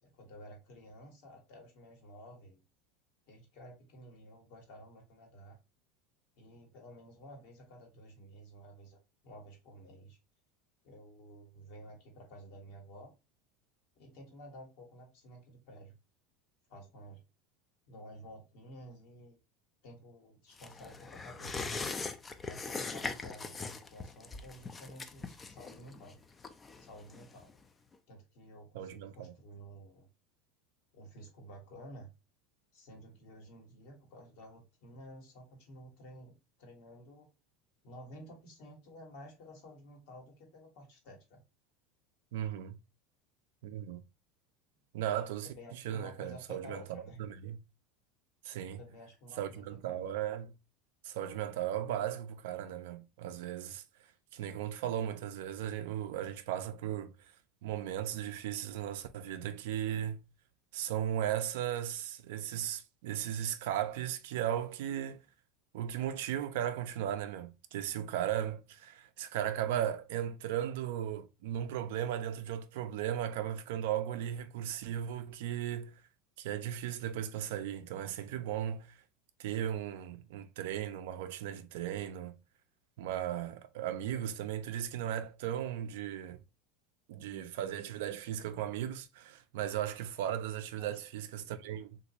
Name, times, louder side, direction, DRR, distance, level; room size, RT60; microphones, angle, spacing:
voice 1, 0.0-2.6 3.3-5.6 6.4-9.0 9.2-10.2 10.8-13.1 13.9-16.0 16.7-17.2 17.9-19.3 19.8-21.6 22.4-26.2 26.8-27.5 28.1-30.1 30.9-32.1 32.7-37.3 37.8-41.4 45.4-47.2 48.8-50.0 90.8-91.0, equal, 65° left, 1.3 m, -52 dB
sound 1, 20.6-27.6 27.9-28.0, left 4 dB, 20° left, 0.3 m, -41 dB
voice 2, 28.7-29.3 42.3-42.8 43.6-44.0 44.9-47.6 48.4-48.8 49.4-50.5 51.0-53.8 54.3-57.1 57.6-60.2 60.7-65.2 65.7-75.9 76.4-78.9 79.4-82.4 83.0-86.4 87.1-92.0, right 10 dB, 75° right, 0.4 m, -36 dB
3.0 x 2.5 x 2.7 m
supercardioid pair, 100°, 0 cm